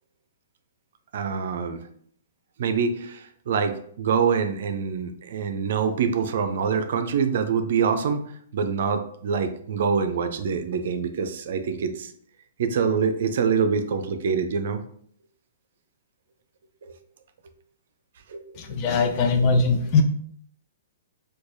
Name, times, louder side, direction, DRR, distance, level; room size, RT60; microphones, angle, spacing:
voice 1, 1.1-1.8 2.6-12.1 12.6-14.8 16.8-16.9 18.3-18.8 19.1-19.5, right 6 dB, 65° right, 8 dB, 0.5 m, -25 dB
voice 2, 18.6-20.0, left 4 dB, 40° left, 4 dB, 0.6 m, -21 dB
4.6 x 2.3 x 2.6 m, 0.62 s
hypercardioid pair, 130°, 0 cm